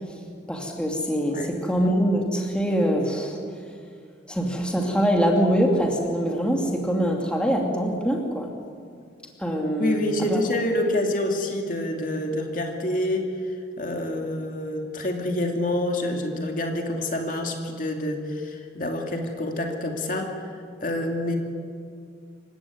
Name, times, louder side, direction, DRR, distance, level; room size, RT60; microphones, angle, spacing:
voice 1, 0.5-3.4 4.3-8.5 9.4-10.0 10.3-10.4, equal, 5° left, 1 dB, 2.6 m, -24 dB
voice 2, 9.8-20.5 20.8-21.4, left 1 dB, 45° left, 3 dB, 2.6 m, -27 dB
27.0 x 16.0 x 9.6 m, 2.2 s
head